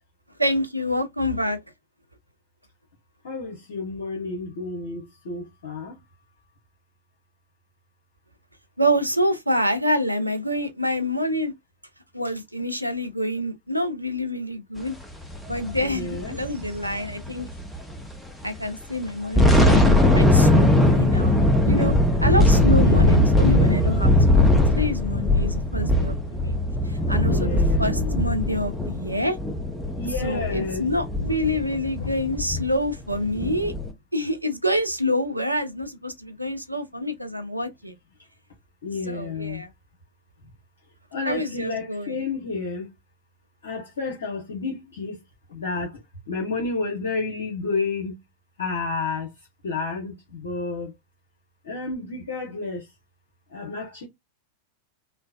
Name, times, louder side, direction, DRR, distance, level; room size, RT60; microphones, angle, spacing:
voice 1, 0.4-1.6 8.8-11.5 12.1-15.0 15.5-17.5 18.4-22.0 22.2-24.4 24.7-26.6 26.9-29.4 30.1-33.7 34.1-37.9 38.9-39.7 41.2-42.2, equal, 90° right, 0.5 m, -27 dB
voice 2, 3.2-6.0 15.8-16.4 22.2-23.1 27.2-28.2 29.9-30.9 32.0-32.1 38.8-39.6 41.1-42.9 43.6-45.2 45.5-46.0 46.3-48.2 48.6-49.3 49.6-50.9 51.6-52.9 53.5-54.1, left 4 dB, 65° left, 0.9 m, -31 dB
sound 1, 15.3-18.1 18.4-18.6 19.1-33.9, left 1 dB, 5° left, 0.7 m, -20 dB
3.3 x 2.1 x 2.3 m
figure-of-eight pair, 90°, 0 cm